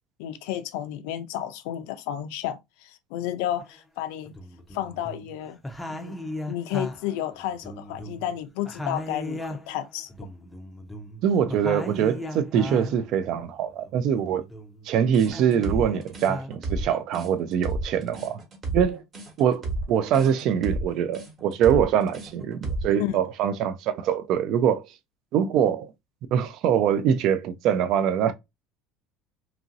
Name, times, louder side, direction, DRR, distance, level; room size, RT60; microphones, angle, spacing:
voice 1, 0.2-4.3 4.7-5.6 5.9-10.3 23.0-23.2, left 12 dB, 80° left, 0.4 m, -32 dB
sound 1, 3.6-3.7 4.3-5.3 5.6-8.4 8.6-13.1 13.5-14.9 15.2-16.5, left 1 dB, 5° left, 0.5 m, -36 dB
voice 2, 11.2-14.4 14.8-18.4 18.7-19.0 19.4-24.9 25.3-25.9 26.3-28.3, right 8 dB, 55° right, 0.3 m, -23 dB
sound 2, 15.1-23.0, right 2 dB, 30° right, 1.1 m, -32 dB
2.9 x 2.6 x 2.5 m
cardioid pair, 145°, 0 cm